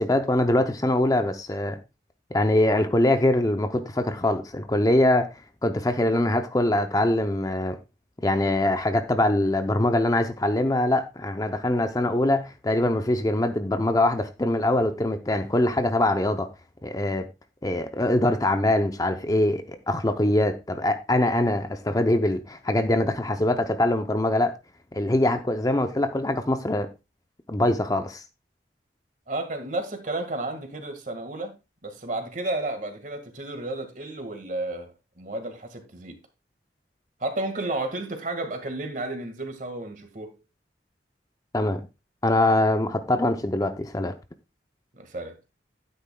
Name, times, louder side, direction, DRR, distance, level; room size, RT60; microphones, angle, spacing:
voice 1, 0.0-1.8 2.3-5.3 5.6-7.8 8.2-16.5 16.8-17.3 17.6-24.5 24.9-26.9 27.5-28.2 41.5-41.8 42.2-44.1, left 1 dB, 20° left, 0.6 m, -23 dB
voice 2, 29.3-31.5 31.8-36.2 37.2-40.3 44.9-45.4, right 2 dB, 45° right, 1.8 m, -32 dB
11.5 x 9.6 x 2.3 m
head